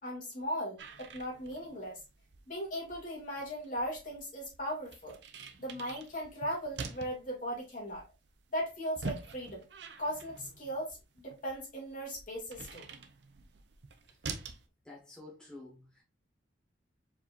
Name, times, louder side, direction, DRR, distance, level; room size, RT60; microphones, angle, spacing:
voice 1, 0.0-2.0 2.5-5.2 5.6-8.0 8.5-9.6 10.0-12.9, equal, 45° left, 2.3 m, -38 dB
sound 1, 0.8-14.7, right 4 dB, 65° right, 0.6 m, -47 dB
voice 2, 14.8-16.0, left 2 dB, 5° left, 1.4 m, -50 dB
4.7 x 4.3 x 2.5 m
head